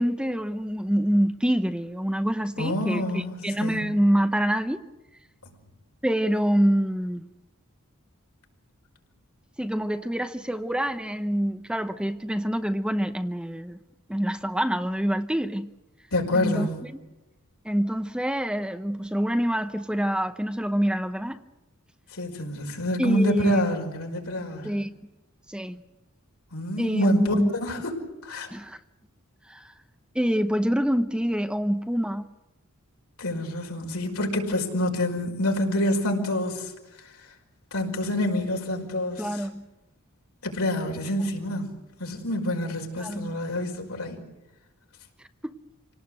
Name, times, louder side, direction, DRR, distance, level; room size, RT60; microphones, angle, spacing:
voice 1, 0.0-4.8 6.0-7.3 9.6-13.8 14.1-15.7 16.3-16.9 17.6-21.4 23.0-23.6 24.6-24.9 25.5-25.8 26.8-27.5 28.5-28.8 29.5-29.7 30.1-32.3 39.2-39.6 43.0-43.3 45.4-45.5, equal, 5° right, 0.8 m, -26 dB
voice 2, 2.6-3.8 16.1-16.7 22.1-24.7 26.5-27.9 28.2-28.5 33.2-36.7 37.7-39.4 40.4-41.7 42.0-44.2, left 1 dB, 85° left, 5.3 m, -27 dB
27.0 x 18.5 x 7.9 m
head